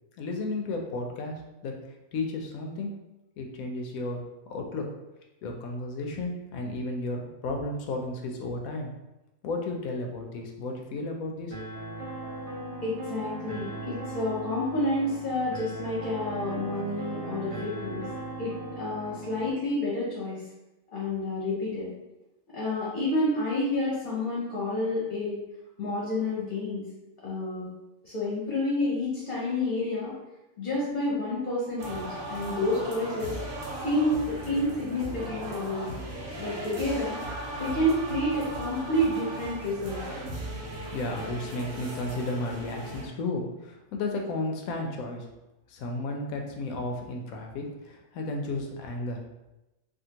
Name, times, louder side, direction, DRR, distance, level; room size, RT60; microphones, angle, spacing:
voice 1, 0.2-1.7 2.1-3.0 3.4-4.2 4.5-4.9 5.4-8.9 9.4-11.6 40.9-45.2 45.7-49.2, left 2 dB, 85° left, 2 dB, 1.0 m, -33 dB
sound 1, 11.5-19.5, right 2 dB, 60° right, 1.2 m, -38 dB
voice 2, 12.8-18.1 18.4-20.4 20.9-21.9 22.5-25.4 25.8-26.8 27.2-27.7 28.0-30.1 30.6-33.3 33.8-35.9 36.4-37.2 37.6-40.0, left 1 dB, 45° left, -6 dB, 0.8 m, -29 dB
sound 2, 31.8-43.1, right 1 dB, 80° right, 1.1 m, -37 dB
3.5 x 2.4 x 2.8 m, 0.99 s
omnidirectional pair, 1.4 m